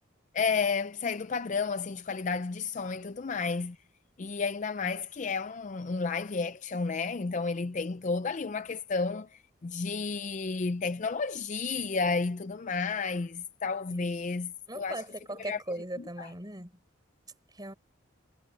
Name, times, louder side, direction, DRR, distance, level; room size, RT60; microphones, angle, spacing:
voice 1, 0.3-3.8 4.2-15.0 15.3-15.6 16.0-16.3, left 4 dB, 35° left, 0.4 m, -32 dB
voice 2, 14.7-16.7 17.5-17.7, right 1 dB, 20° right, 5.1 m, -39 dB
head